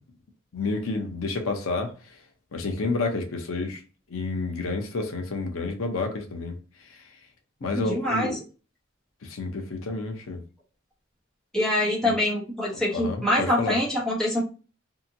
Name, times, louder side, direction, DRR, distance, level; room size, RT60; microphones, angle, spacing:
voice 1, 0.5-1.9 2.5-3.8 4.1-6.5 7.6-8.4 9.2-10.4 12.0-12.2 12.9-13.8, left 3 dB, 85° left, 0.6 m, -29 dB
voice 2, 7.7-8.4 11.5-14.4, left 1 dB, 5° left, 1.1 m, -25 dB
2.8 x 2.5 x 2.6 m
head